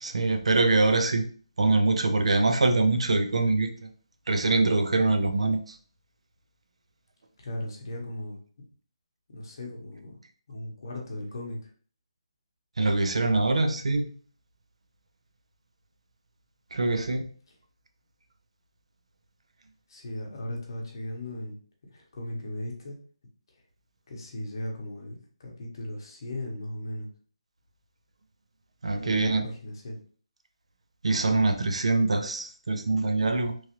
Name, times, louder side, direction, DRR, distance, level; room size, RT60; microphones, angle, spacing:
voice 1, 0.0-1.3 1.6-3.7 4.3-5.8 12.8-14.1 16.7-17.3 28.8-29.5 31.0-33.5, right 2 dB, 80° right, 8 dB, 0.5 m, -24 dB
voice 2, 7.4-8.6 9.3-10.2 10.5-11.6 19.9-21.6 21.9-23.0 24.1-27.1 29.0-30.0, left 1 dB, 45° left, 0 dB, 0.9 m, -37 dB
3.0 x 2.4 x 2.9 m, 0.43 s
hypercardioid pair, 170°, 3 cm